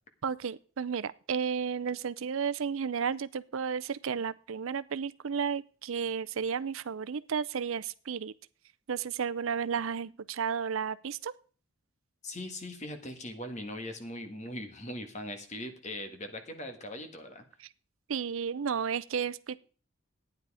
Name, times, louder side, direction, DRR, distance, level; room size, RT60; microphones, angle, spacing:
voice 1, 0.2-8.3 8.9-11.3 18.1-19.6, right 6 dB, 75° right, 0.5 m, -33 dB
voice 2, 12.2-17.4, left 1 dB, 35° left, 1.6 m, -40 dB
12.0 x 9.7 x 4.8 m
head